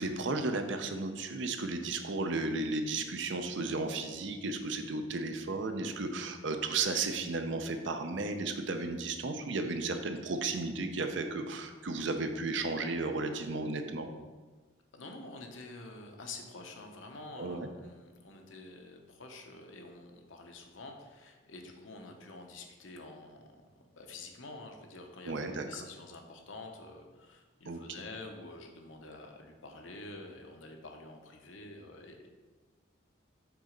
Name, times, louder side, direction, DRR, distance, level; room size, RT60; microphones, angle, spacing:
voice 1, 0.0-14.1 17.4-17.7 25.3-25.6 27.7-27.8, right 3 dB, 65° right, 6 dB, 0.6 m, -34 dB
voice 2, 14.9-23.5 23.9-32.3, left 2 dB, 75° left, 3 dB, 0.9 m, -48 dB
6.0 x 4.1 x 5.2 m, 1.3 s
head